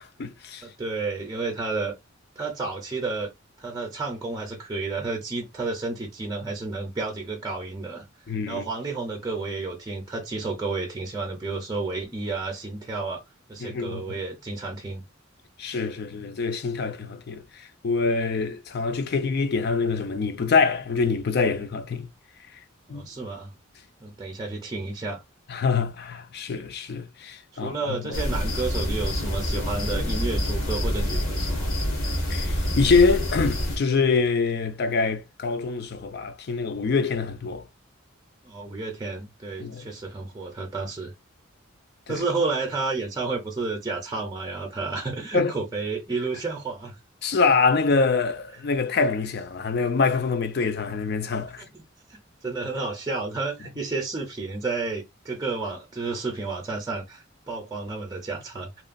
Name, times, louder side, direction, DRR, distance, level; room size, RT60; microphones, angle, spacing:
voice 1, 0.0-0.7 8.3-8.7 13.6-14.2 15.6-22.1 22.9-23.0 25.5-28.2 32.3-37.6 39.6-39.9 42.1-42.2 45.3-45.5 47.2-51.6, left 4 dB, 55° left, 0.4 m, -25 dB
voice 2, 0.6-1.9 2.4-3.3 3.6-8.1 8.5-13.2 13.5-15.0 22.9-23.5 24.0-25.2 27.5-31.7 38.4-41.1 42.1-47.0 51.6-51.8 52.1-58.8, right 3 dB, 20° right, 0.5 m, -31 dB
sound 1, 28.1-33.8, equal, 85° left, 1.1 m, -26 dB
3.0 x 2.3 x 2.5 m
head